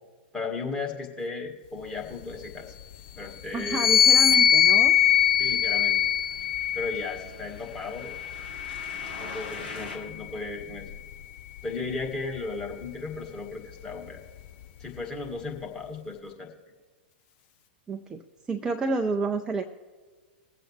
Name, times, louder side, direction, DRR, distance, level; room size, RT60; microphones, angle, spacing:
voice 1, 0.3-2.7 3.1-3.9 5.4-6.0 6.7-8.2 9.2-10.9 11.6-14.2 14.8-16.5, left 3 dB, 15° left, -1 dB, 1.9 m, -35 dB
voice 2, 3.5-5.0 17.9-18.2 18.5-19.7, right 3 dB, 15° right, 5 dB, 0.5 m, -29 dB
sound 1, 3.6-7.2 8.0-9.6, left 9 dB, 40° left, 0.6 m, -22 dB
sound 2, 3.8-10.0, left 3 dB, 70° left, 2.2 m, -45 dB
21.0 x 7.7 x 3.1 m, 1.4 s
figure-of-eight pair, 100°, 6 cm